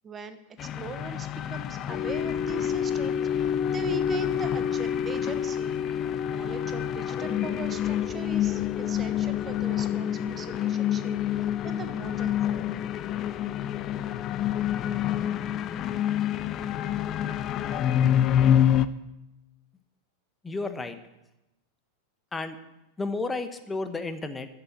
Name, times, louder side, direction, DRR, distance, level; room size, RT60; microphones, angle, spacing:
voice 1, 0.0-5.8 6.2-13.0, right 5 dB, 20° right, 10 dB, 1.0 m, -40 dB
sound 1, 0.6-18.9, left 10 dB, 30° left, 0.6 m, -27 dB
voice 2, 20.4-21.0 22.3-22.6 23.0-24.5, left 3 dB, 10° left, 10 dB, 1.1 m, -32 dB
14.0 x 6.9 x 8.5 m, 0.93 s
figure-of-eight pair, 90°, 0 cm